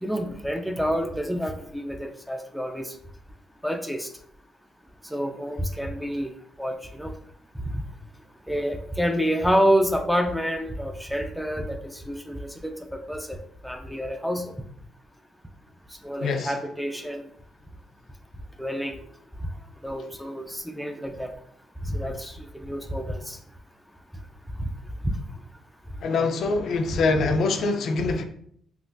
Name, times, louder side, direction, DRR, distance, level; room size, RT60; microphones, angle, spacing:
voice 1, 0.0-2.9 3.6-4.1 5.1-6.3 6.6-7.1 7.7-7.8 8.5-13.4 13.6-14.6 16.0-17.2 18.6-19.0 19.8-21.3 21.9-23.4 25.0-25.2 27.2-27.3, equal, ahead, 0.4 m, -28 dB
voice 2, 16.2-16.5 26.0-28.2, left 3 dB, 65° left, 0.4 m, -24 dB
3.7 x 2.4 x 2.5 m
cardioid pair, 90°, 0 cm